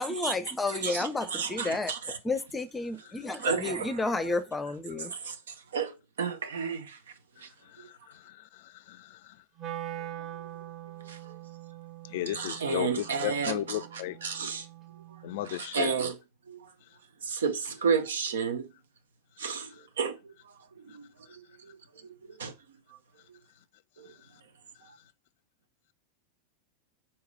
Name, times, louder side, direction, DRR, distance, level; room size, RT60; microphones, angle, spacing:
voice 1, 0.0-1.9 2.2-5.1, left 3 dB, 10° left, 0.7 m, -31 dB
voice 2, 0.7-2.2 3.4-4.0 5.0-5.4 5.7-7.0 7.4-7.5 11.1-11.4 12.3-13.6 14.2-14.7 15.5-16.1 16.5-16.6 17.2-18.7 19.4-20.3 20.8-21.7 22.4-22.5 24.0-24.1, right 6 dB, 65° right, 0.8 m, -32 dB
voice 3, 3.0-3.5 7.6-9.4 12.0-14.2 15.2-15.9 19.5-19.9 20.9-21.0 21.3-21.4 24.0-24.3, left 14 dB, 50° left, 0.4 m, -36 dB
Wind instrument woodwind instrument, 9.6-15.7, right 13 dB, 35° right, 2.1 m, -43 dB
4.8 x 4.2 x 5.2 m
figure-of-eight pair, 90°, 0 cm